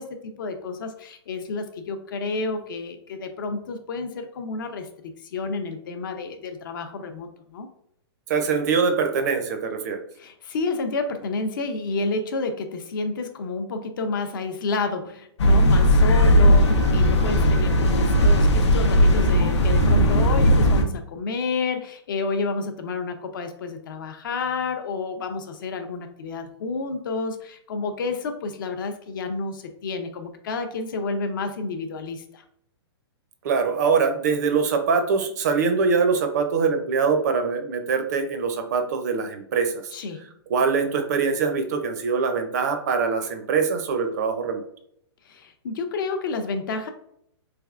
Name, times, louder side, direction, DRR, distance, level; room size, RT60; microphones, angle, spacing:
voice 1, 0.0-7.7 10.2-32.4 39.9-40.3 45.3-46.9, left 3 dB, 50° left, 7 dB, 0.4 m, -30 dB
voice 2, 8.3-10.0 33.4-39.7 40.5-44.6, right 5 dB, 40° right, 6 dB, 0.4 m, -23 dB
sound 1, 15.4-20.8, equal, 85° left, 0.6 m, -17 dB
3.3 x 3.2 x 2.4 m, 0.70 s
hypercardioid pair, 165°, 14 cm